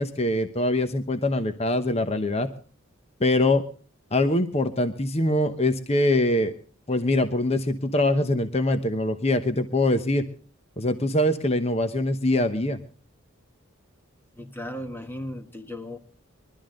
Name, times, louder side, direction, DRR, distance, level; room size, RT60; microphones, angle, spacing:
voice 1, 0.0-2.5 3.2-3.6 4.1-6.5 6.9-10.2 10.8-12.8, left 1 dB, 30° left, 9 dB, 1.0 m, -23 dB
voice 2, 14.4-16.0, left 1 dB, 10° left, 7 dB, 1.2 m, -36 dB
22.5 x 12.5 x 3.8 m, 0.40 s
head